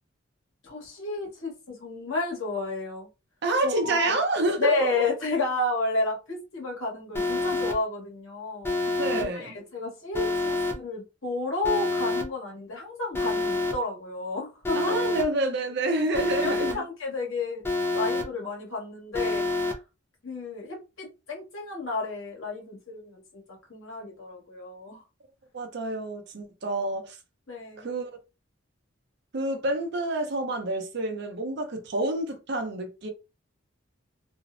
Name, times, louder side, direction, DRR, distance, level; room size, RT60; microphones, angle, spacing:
voice 1, 0.6-3.1 3.6-4.2 4.6-14.9 15.9-17.6 17.9-19.7 20.2-25.0 27.5-27.9, left 3 dB, 80° left, 1.1 m, -32 dB
voice 2, 3.4-5.0 8.9-9.6 14.7-16.8 25.5-27.2 27.8-28.1 29.3-33.1, right 2 dB, 55° right, 0.5 m, -28 dB
Alarm, 7.1-7.7 8.6-9.2 10.1-10.7 11.6-12.2 13.1-13.7 14.6-15.2 16.1-16.7 17.6-18.2 19.1-19.7, left 3 dB, 10° left, 0.4 m, -27 dB
2.4 x 2.0 x 2.4 m
head